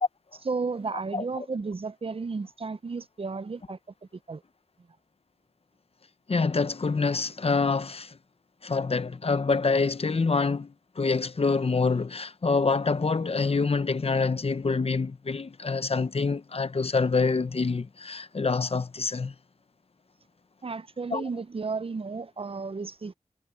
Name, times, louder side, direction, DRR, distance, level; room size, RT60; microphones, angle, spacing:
voice 1, 0.5-3.8 4.3-4.4 20.6-23.1, right 4 dB, 45° right, 0.6 m, -33 dB
voice 2, 1.1-1.4 6.3-8.1 8.6-19.3 21.1-21.2, left 4 dB, 50° left, 0.8 m, -26 dB
wide cardioid pair, 80°, 13 cm